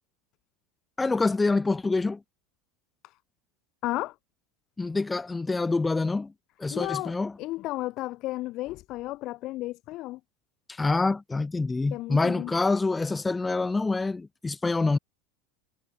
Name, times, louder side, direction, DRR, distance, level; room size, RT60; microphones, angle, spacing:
voice 1, 1.0-2.2 4.8-6.3 6.6-7.3 10.7-15.0, left 3 dB, 15° left, 1.5 m, -26 dB
voice 2, 3.8-4.2 6.7-10.2 11.9-12.5, left 17 dB, 50° left, 4.0 m, -33 dB
hypercardioid pair, 80°, 0 cm